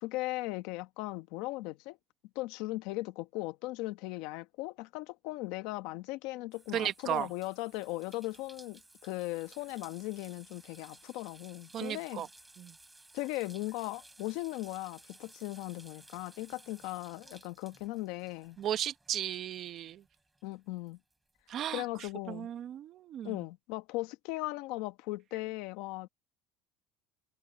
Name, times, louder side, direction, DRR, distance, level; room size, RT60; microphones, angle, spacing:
voice 1, 0.0-2.0 2.3-12.3 13.1-18.6 20.4-21.0 21.7-22.5 23.2-26.1, left 19 dB, 60° left, 1.1 m, -38 dB
sound 1, 6.5-20.5 20.9-22.1, right 2 dB, 5° right, 7.1 m, -58 dB
voice 2, 6.7-7.3 11.7-12.3 12.6-12.7 18.6-20.0 21.5-21.8 22.3-23.4, right 11 dB, 35° right, 1.0 m, -35 dB
cardioid pair, 170°, 0 cm